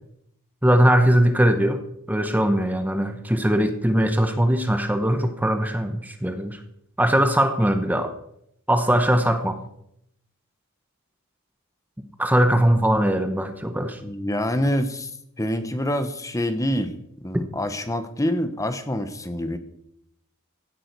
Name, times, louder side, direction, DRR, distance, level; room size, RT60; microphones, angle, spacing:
voice 1, 0.6-1.8 2.1-6.6 7.0-8.1 8.7-9.6 12.2-14.0, right 1 dB, 10° right, 7 dB, 0.9 m, -20 dB
voice 2, 14.0-15.1 15.4-17.0 17.2-19.6, equal, 15° left, 9 dB, 1.0 m, -26 dB
16.0 x 11.0 x 4.6 m, 0.75 s
head